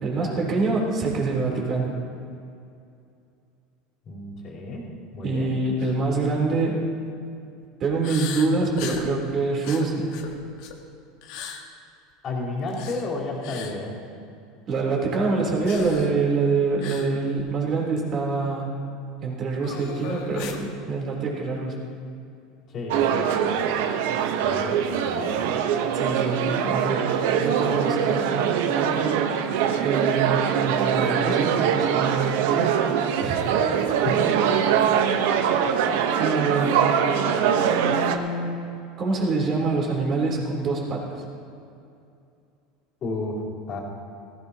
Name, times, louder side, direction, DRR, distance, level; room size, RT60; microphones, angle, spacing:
voice 1, 0.0-1.9 5.2-6.9 7.8-10.2 14.7-18.7 19.2-21.8 25.9-27.1 27.4-28.3 28.8-29.3 29.8-32.8 33.2-33.5 36.2-36.8 37.5-38.6 39.0-41.2, right 3 dB, 35° right, -2 dB, 3.5 m, -25 dB
voice 2, 4.1-4.9 5.1-5.6 12.2-14.0 22.7-23.6 24.4-25.4 33.6-34.3 43.0-43.4 43.7-43.8, left 2 dB, 35° left, -6 dB, 4.0 m, -32 dB
sound 1, 5.8-6.0 6.4-6.6 8.0-9.1 9.6-10.8 11.2-11.6 12.7-13.1 13.4-13.7 15.6-16.1 16.8-17.1 17.4-17.5 18.0-18.1 19.6-20.6, left 7 dB, 65° left, 1.5 m, -37 dB
sound 2, 22.9-38.2, right 8 dB, 75° right, 1.0 m, -23 dB
18.0 x 16.5 x 2.9 m, 2.5 s
supercardioid pair, 135°, 0 cm